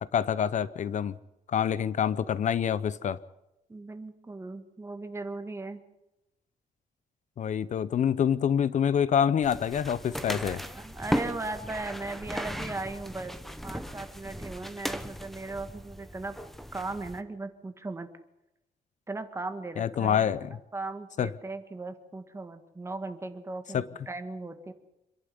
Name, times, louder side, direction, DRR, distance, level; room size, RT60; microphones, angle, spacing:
voice 1, 0.1-1.1 1.5-3.2 7.4-10.6 19.8-20.5 21.2-21.3 23.7-23.8, left 8 dB, 55° left, 0.7 m, -26 dB
voice 2, 3.7-5.8 10.3-13.4 13.6-16.3 16.7-18.1 19.1-20.3 20.7-24.7, right 3 dB, 20° right, 1.7 m, -38 dB
sound 1, 9.4-17.2, equal, ahead, 1.1 m, -37 dB
26.5 x 11.5 x 9.8 m
wide cardioid pair, 160°, 14 cm